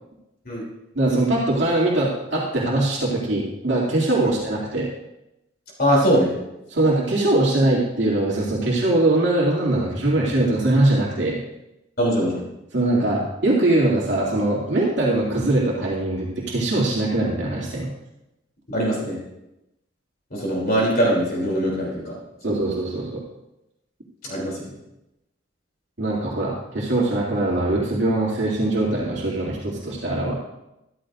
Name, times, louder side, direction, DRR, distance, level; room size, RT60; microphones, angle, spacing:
voice 1, 0.9-4.9 6.7-11.4 12.7-17.9 22.4-23.2 26.0-30.3, right 2 dB, 60° right, -5 dB, 2.6 m, -22 dB
voice 2, 5.8-6.3 12.0-12.4 18.7-19.2 20.3-22.1 22.4-22.6 24.2-24.6, equal, 50° left, -3 dB, 3.3 m, -22 dB
14.0 x 13.5 x 2.6 m, 0.90 s
head